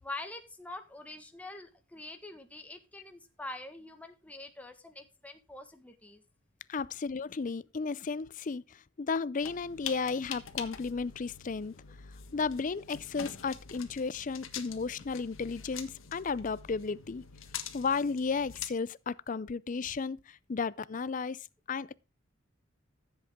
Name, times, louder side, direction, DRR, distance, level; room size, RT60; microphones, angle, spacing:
voice 1, 0.0-6.2, left 2 dB, 5° left, 1.5 m, -45 dB
voice 2, 6.7-11.8 12.3-17.2 17.7-22.0, left 4 dB, 40° left, 0.4 m, -34 dB
sound 1, 9.4-18.7, left 8 dB, 85° left, 1.5 m, -45 dB
14.0 x 7.9 x 3.6 m
head